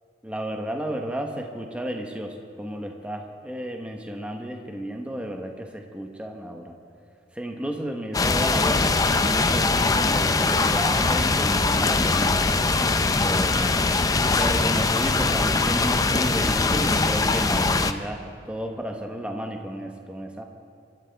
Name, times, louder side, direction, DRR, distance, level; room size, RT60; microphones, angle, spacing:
voice 1, 0.2-6.8 7.3-12.4 13.2-13.9 14.4-20.4, equal, 5° right, 3 dB, 1.1 m, -32 dB
sound 1, 8.1-17.9, left 3 dB, 20° left, 0.5 m, -22 dB
26.0 x 13.5 x 3.5 m, 2.5 s
head